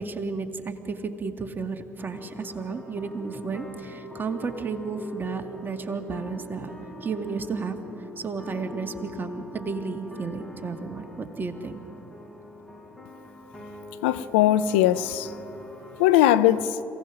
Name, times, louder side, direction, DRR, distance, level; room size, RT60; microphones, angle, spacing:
voice 1, 0.0-6.7 7.0-7.8 8.2-11.8, right 4 dB, 35° right, 2.0 m, -32 dB
sound 1, 2.0-16.0, left 1 dB, 5° left, 5.4 m, -43 dB
voice 2, 14.0-15.3 16.0-16.8, left 13 dB, 75° left, 0.6 m, -20 dB
27.0 x 17.0 x 6.2 m
hypercardioid pair, 50°, 6 cm